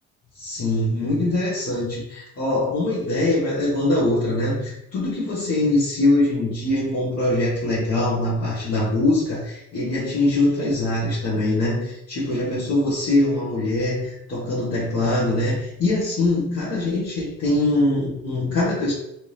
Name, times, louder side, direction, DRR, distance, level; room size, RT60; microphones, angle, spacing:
voice 1, 0.3-18.9, left 2 dB, 55° left, -8 dB, 1.2 m, -22 dB
3.4 x 2.8 x 3.2 m, 0.80 s
cardioid pair, 90°, 30 cm